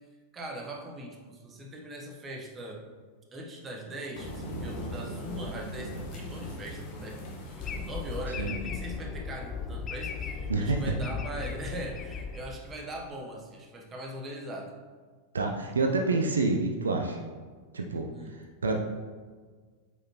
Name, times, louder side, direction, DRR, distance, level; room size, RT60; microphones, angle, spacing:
voice 1, 0.3-2.9 3.3-14.7 18.1-18.3, right 1 dB, 20° right, 1 dB, 1.1 m, -40 dB
sound 1, 4.1-8.6, equal, 45° left, 1.4 m, -39 dB
sound 2, 7.6-13.0, left 5 dB, 25° left, 0.5 m, -37 dB
voice 2, 10.5-10.9 15.3-17.2 17.7-18.8, right 3 dB, 70° right, 3 dB, 0.6 m, -28 dB
8.0 x 5.3 x 3.1 m, 1.5 s
figure-of-eight pair, 90°, 0 cm